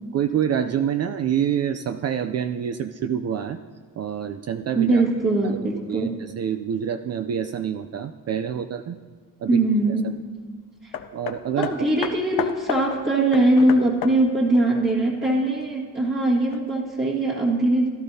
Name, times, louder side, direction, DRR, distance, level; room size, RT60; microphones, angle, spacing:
voice 1, 0.1-3.6 4.0-5.0 5.5-9.0 9.4-9.6 11.1-11.9 12.4-12.5, right 9 dB, 45° right, 8 dB, 0.4 m, -27 dB
voice 2, 4.7-6.2 9.5-10.2 10.8-10.9 11.5-17.9, right 2 dB, 30° right, -6 dB, 1.8 m, -21 dB
Hammer, 10.9-15.7 16.5-16.6, left 8 dB, 70° left, 0.6 m, -33 dB
17.0 x 12.0 x 2.7 m, 1.5 s
cardioid pair, 95°, 35 cm